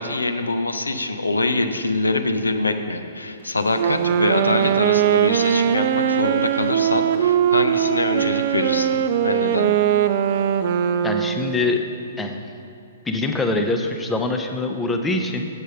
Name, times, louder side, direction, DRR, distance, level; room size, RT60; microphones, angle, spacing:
voice 1, 0.0-9.7, left 2 dB, 75° left, 7 dB, 0.6 m, -24 dB
Wind instrument woodwind instrument, 3.7-11.6, right 9 dB, 45° right, 0.4 m, -20 dB
voice 2, 11.0-11.8 12.2-12.4 13.1-15.5, left 2 dB, 10° left, 4 dB, 0.6 m, -24 dB
7.9 x 7.4 x 5.3 m, 2.6 s
figure-of-eight pair, 115°, 0 cm